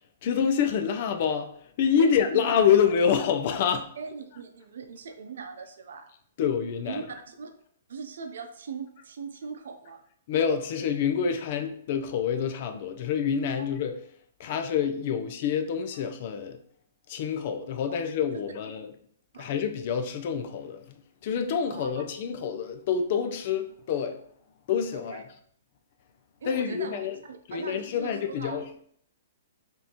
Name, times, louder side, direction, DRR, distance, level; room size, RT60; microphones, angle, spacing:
voice 1, 0.2-1.5 1.8-3.9 6.4-7.0 10.3-14.0 14.4-16.6 17.1-18.9 19.4-20.8 21.2-24.2 24.7-25.2 26.5-27.1 27.5-28.6, left 7 dB, 45° left, 0.5 m, -27 dB
voice 2, 2.0-2.5 4.0-6.1 6.8-7.5 7.9-10.0 13.6-13.7 15.9-16.0 17.9-18.0 18.3-18.4 19.3-19.5 21.7-21.9 24.9-25.2 26.4-28.6, right 5 dB, 75° right, 0.6 m, -40 dB
5.2 x 2.8 x 2.9 m
hypercardioid pair, 150°, 0 cm